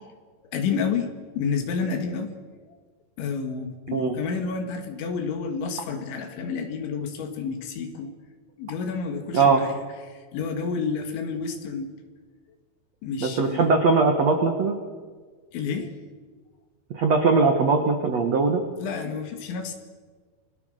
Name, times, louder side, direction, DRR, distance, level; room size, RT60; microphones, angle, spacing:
voice 1, 0.5-2.4 3.2-8.1 8.6-9.7 10.1-11.9 13.0-13.7 15.5-15.9 18.8-19.7, left 5 dB, 70° left, 6 dB, 4.4 m, -30 dB
voice 2, 13.2-14.8 16.9-18.6, right 4 dB, 65° right, 4 dB, 1.6 m, -20 dB
29.5 x 21.5 x 6.6 m, 1.5 s
omnidirectional pair, 5.6 m